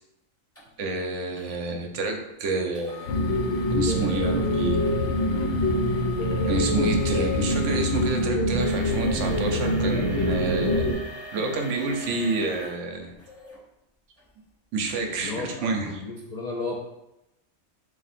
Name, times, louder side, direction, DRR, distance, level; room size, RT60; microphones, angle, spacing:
sound 1, 0.5-0.6 1.4-1.6 2.7-13.6 14.2-14.3 14.9-15.0, left 2 dB, 15° left, 0.8 m, -42 dB
voice 1, 0.8-3.1 3.7-4.8 6.5-10.9 11.3-13.1 14.7-15.9, right 3 dB, 70° right, 3 dB, 0.9 m, -28 dB
sound 2, 3.1-10.9, left 1 dB, 80° left, 1.1 m, -24 dB
voice 2, 15.2-16.8, left 3 dB, 55° left, -4 dB, 0.5 m, -33 dB
3.5 x 2.6 x 4.1 m, 0.90 s
omnidirectional pair, 1.3 m